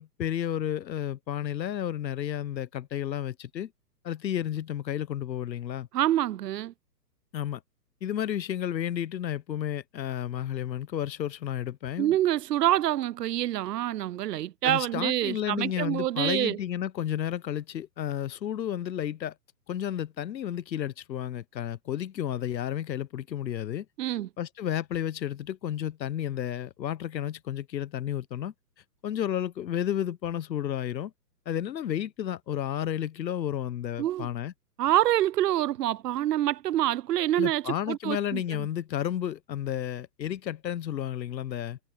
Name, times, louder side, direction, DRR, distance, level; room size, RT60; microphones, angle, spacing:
voice 1, 0.0-3.7 4.0-5.9 7.3-7.6 8.0-12.2 14.6-19.3 19.7-28.5 29.0-31.1 31.5-34.5 37.4-41.8, left 10 dB, 85° left, 1.1 m, -32 dB
voice 2, 5.9-6.7 12.0-16.6 24.0-24.3 34.0-34.3 34.8-38.4, right 13 dB, 70° right, 0.6 m, -26 dB
hypercardioid pair, 170°, 50 cm